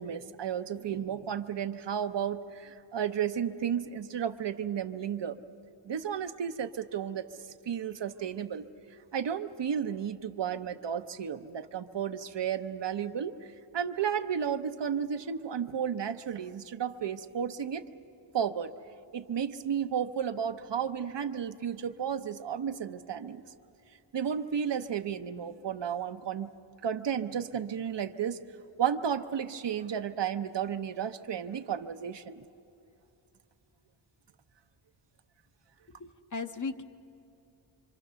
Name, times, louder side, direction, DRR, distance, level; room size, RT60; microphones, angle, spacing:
voice 1, 0.0-5.4 5.9-7.3 7.7-8.7 9.1-13.3 13.7-17.8 18.3-18.7 19.1-23.4 24.1-26.5 26.8-28.4 28.8-32.4, right 8 dB, 60° right, 9 dB, 0.8 m, -33 dB
voice 2, 36.0-36.8, left 4 dB, 40° left, 8 dB, 0.7 m, -36 dB
26.0 x 26.0 x 6.9 m, 2.8 s
wide cardioid pair, 165°, 48 cm